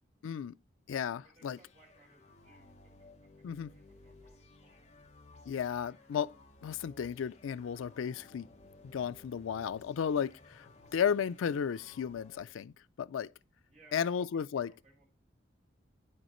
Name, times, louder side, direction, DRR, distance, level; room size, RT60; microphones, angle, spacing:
voice 1, 0.2-0.5 0.9-1.6 3.4-3.7 5.5-6.3 6.6-8.5 8.9-13.3 13.9-14.7, left 7 dB, 85° left, 0.4 m, -34 dB
voice 2, 1.1-3.1 3.3-5.0 13.7-15.1, right 3 dB, 35° right, 3.6 m, -64 dB
sound 1, 1.5-12.5, left 2 dB, 35° left, 1.1 m, -58 dB
9.0 x 6.5 x 3.0 m
head